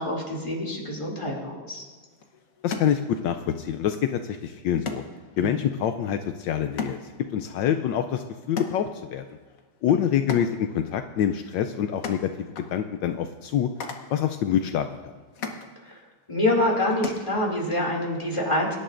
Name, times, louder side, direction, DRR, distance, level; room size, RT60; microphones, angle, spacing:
voice 1, 0.0-1.8 5.4-5.6 9.8-10.0 15.8-16.0 16.3-18.7, left 1 dB, 15° left, -2 dB, 2.4 m, -26 dB
sound 1, 1.8-17.9, left 4 dB, 50° left, 1.3 m, -40 dB
voice 2, 2.6-5.0 5.4-7.0 7.3-9.2 9.8-13.7 14.1-15.1, left 9 dB, 80° left, 7 dB, 1.2 m, -26 dB
24.0 x 11.0 x 2.5 m, 1.3 s
omnidirectional pair, 2.1 m